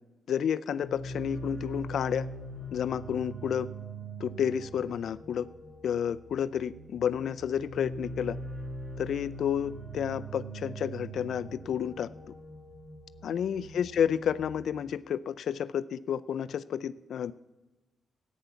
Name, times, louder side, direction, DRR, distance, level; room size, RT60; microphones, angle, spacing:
voice 1, 0.3-2.3 2.7-3.7 4.2-5.5 5.8-8.4 9.0-12.1 13.2-17.3, left 8 dB, 70° left, 14 dB, 0.4 m, -30 dB
Original un-synthesized Bass-Middle, 0.7-14.4, right 1 dB, 20° right, 3.2 m, -42 dB
14.0 x 9.3 x 7.0 m, 1.1 s
wide cardioid pair, 150°, 0 cm